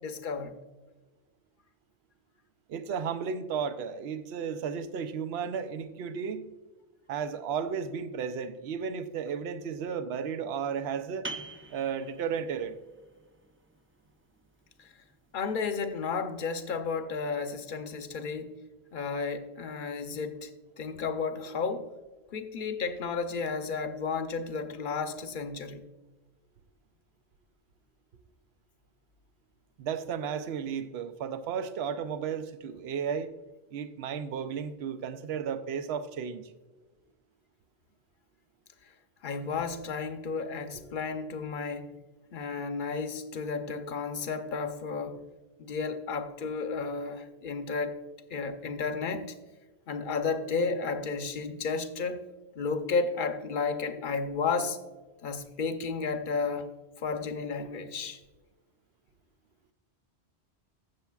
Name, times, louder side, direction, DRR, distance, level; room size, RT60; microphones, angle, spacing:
voice 1, 0.0-0.5 14.8-14.9 15.3-18.5 18.9-20.5 20.8-21.9 22.3-25.8 39.2-41.9 42.3-45.2 45.6-48.0 48.3-49.3 49.9-52.2 52.6-54.8 55.2-56.7 57.0-58.2, left 4 dB, 55° left, 0.9 m, -32 dB
voice 2, 2.7-6.5 7.1-11.3 11.7-12.8 29.8-33.3 33.7-36.5, right 7 dB, 75° right, 0.9 m, -34 dB
sound 1, 11.2-16.6, right 2 dB, 15° right, 0.4 m, -47 dB
15.5 x 7.0 x 2.3 m
omnidirectional pair, 1.1 m